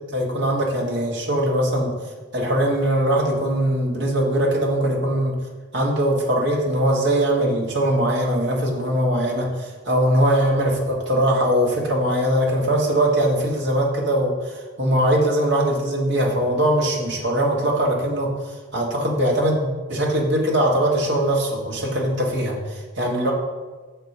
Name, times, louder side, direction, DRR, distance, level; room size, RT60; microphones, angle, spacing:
voice 1, 0.1-1.9 2.3-5.3 5.7-14.5 14.8-18.3 18.7-23.3, right 1 dB, 60° right, -2 dB, 1.5 m, -21 dB
6.6 x 4.5 x 5.5 m, 1.3 s
head